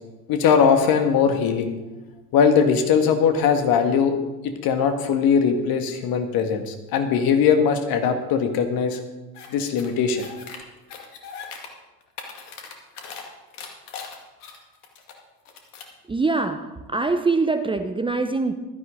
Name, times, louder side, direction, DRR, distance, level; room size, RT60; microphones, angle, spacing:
voice 1, 0.3-1.7 2.3-4.2 4.4-9.0 9.5-10.3, left 6 dB, 50° left, 7 dB, 1.9 m, -20 dB
sound 1, 9.3-9.5 9.8-10.6 10.9-11.7 12.0-13.2 13.5-15.1 15.4-15.9, left 6 dB, 70° left, 2.3 m, -39 dB
voice 2, 16.0-18.5, right 3 dB, 10° right, 8 dB, 0.8 m, -23 dB
15.5 x 13.0 x 3.9 m, 1.1 s
hypercardioid pair, 75°, 47 cm